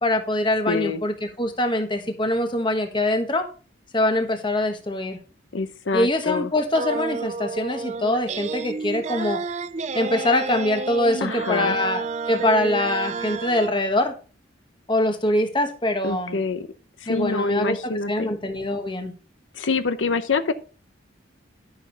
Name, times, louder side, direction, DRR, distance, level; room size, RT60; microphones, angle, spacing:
voice 1, 0.0-3.5 3.9-5.2 5.9-9.4 9.9-14.1 14.9-16.4 17.1-19.1, left 1 dB, 25° left, 6 dB, 1.3 m, -23 dB
voice 2, 0.7-1.0 5.5-6.5 11.2-11.8 16.0-16.7 17.0-18.3 19.5-20.5, left 4 dB, 80° left, 11 dB, 0.8 m, -26 dB
sound 1, 6.7-13.7, right 4 dB, 35° right, 0.4 m, -30 dB
11.5 x 6.3 x 3.9 m, 0.37 s
head